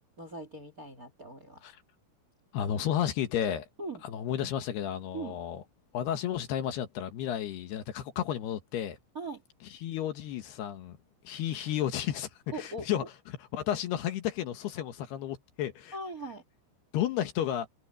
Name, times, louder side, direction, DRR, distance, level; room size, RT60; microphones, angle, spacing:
voice 1, 0.0-1.7 3.8-4.0 5.1-5.4 9.1-9.4 12.5-13.1 15.9-16.4, right 2 dB, 30° right, 2.0 m, -40 dB
voice 2, 2.5-3.7 4.0-5.6 5.9-9.0 9.8-11.0 11.3-12.3 12.5-13.0 13.5-15.9 16.9-17.7, left 10 dB, 70° left, 3.3 m, -32 dB
omnidirectional pair, 5.0 m